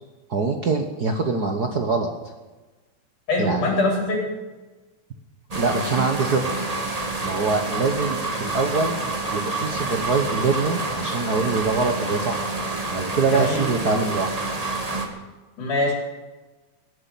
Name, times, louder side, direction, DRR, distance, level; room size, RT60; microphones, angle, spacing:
voice 1, 0.3-2.1 3.4-3.7 5.5-6.4 7.2-8.9 9.3-12.5 12.9-14.3, right 4 dB, 55° right, 4 dB, 1.1 m, -24 dB
voice 2, 3.3-4.3 13.3-13.6 15.6-15.9, left 2 dB, 80° left, -1 dB, 5.3 m, -23 dB
sound 1, 5.5-15.1, right 3 dB, 15° right, 1.3 m, -28 dB
16.5 x 9.7 x 8.5 m, 1.2 s
omnidirectional pair, 3.5 m